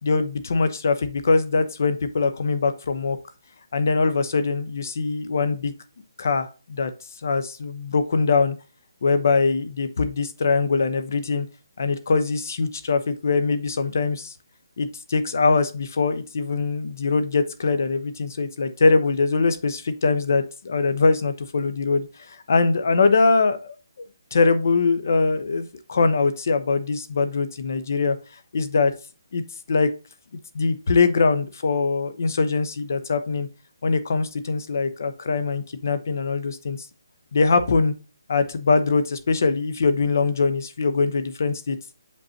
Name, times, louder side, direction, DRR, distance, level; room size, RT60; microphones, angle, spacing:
voice 1, 0.0-3.2 3.7-5.7 6.2-6.9 7.2-8.5 9.0-11.5 11.8-14.3 14.8-23.7 24.3-28.2 28.5-28.9 29.3-29.4 29.7-29.9 30.5-33.5 33.8-36.8 37.3-37.9 38.3-41.8, left 4 dB, 45° left, 10 dB, 0.9 m, -22 dB
7.9 x 5.4 x 2.8 m, 0.33 s
hypercardioid pair, 175°, 2 cm